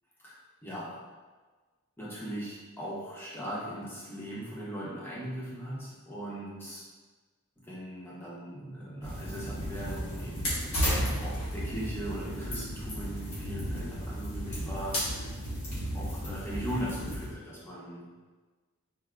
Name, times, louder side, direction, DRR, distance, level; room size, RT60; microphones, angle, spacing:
voice 1, 0.2-1.0 2.0-6.9 7.6-15.5 15.9-18.0, right 1 dB, 10° left, -8 dB, 0.9 m, -39 dB
sound 1, 9.0-17.3, equal, 80° left, 1.4 m, -34 dB
4.4 x 2.7 x 2.4 m, 1.4 s
head